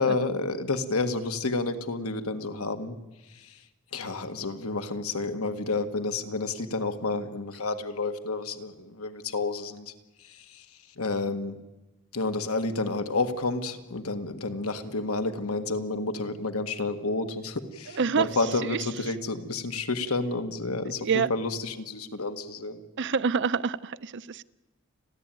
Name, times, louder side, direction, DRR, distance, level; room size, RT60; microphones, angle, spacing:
voice 1, 0.0-2.9 3.3-3.6 3.9-9.9 10.2-10.7 11.0-11.6 12.1-22.8, left 3 dB, 85° left, 7 dB, 1.7 m, -30 dB
voice 2, 17.9-18.3 18.6-18.8 21.0-21.3 23.0-24.4, right 6 dB, 55° right, 15 dB, 0.6 m, -27 dB
30.0 x 11.5 x 9.2 m, 1.1 s
head